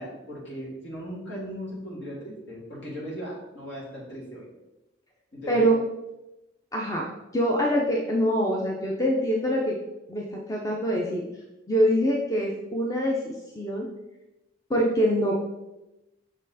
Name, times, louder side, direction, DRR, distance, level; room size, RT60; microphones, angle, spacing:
voice 1, 0.0-4.5 5.3-5.7, equal, 65° left, -4 dB, 2.3 m, -37 dB
voice 2, 6.7-7.0 7.3-9.8 10.1-11.2 11.7-13.8 14.7-15.4, equal, 15° left, -2 dB, 0.5 m, -24 dB
6.0 x 4.3 x 4.1 m, 0.99 s
head